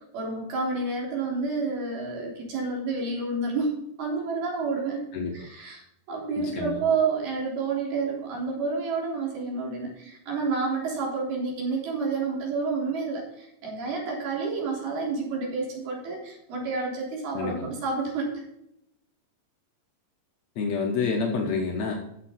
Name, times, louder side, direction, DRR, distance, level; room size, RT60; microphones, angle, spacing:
voice 1, 0.1-5.0 5.3-5.8 6.1-18.4, right 4 dB, 60° right, -2 dB, 5.3 m, -29 dB
voice 2, 5.1-5.5 6.4-6.8 17.3-17.7 20.5-21.9, left 4 dB, 70° left, 1 dB, 1.6 m, -28 dB
13.5 x 7.6 x 4.4 m, 0.79 s
omnidirectional pair, 5.3 m